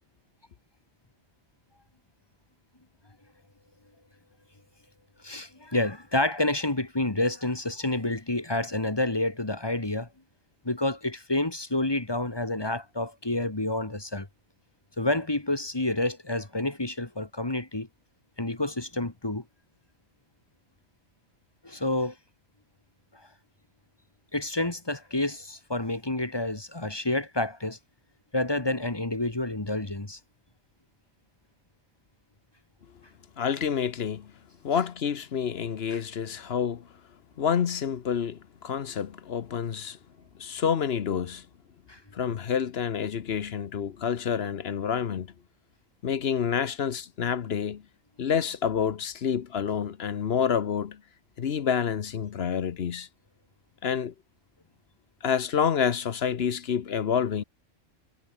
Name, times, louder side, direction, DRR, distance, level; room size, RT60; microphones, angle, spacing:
voice 1, 5.2-10.1 10.6-14.3 15.0-17.9 18.4-19.4 21.6-22.1 24.3-27.8 28.3-30.2 35.9-36.0 41.9-42.0, left 2 dB, 20° left, 1.7 m, -29 dB
voice 2, 33.4-34.3 34.6-36.9 37.4-40.0 40.4-41.4 42.1-45.3 46.0-47.8 48.2-51.0 51.4-53.1 53.8-54.1 55.2-57.4, left 7 dB, 55° left, 1.0 m, -28 dB
omnidirectional pair, 1.3 m